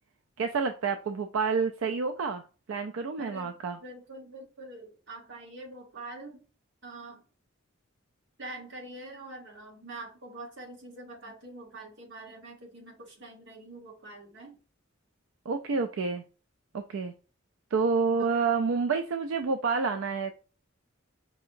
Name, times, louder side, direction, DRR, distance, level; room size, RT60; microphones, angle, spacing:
voice 1, 0.4-2.4 2.7-3.8 15.5-16.2 16.7-17.1 17.7-20.3, right 5 dB, 80° right, 6 dB, 0.4 m, -28 dB
voice 2, 3.2-6.4 6.8-7.2 8.4-14.6 18.2-18.4, right 2 dB, 65° right, 1 dB, 1.3 m, -45 dB
5.3 x 2.8 x 2.5 m, 0.36 s
head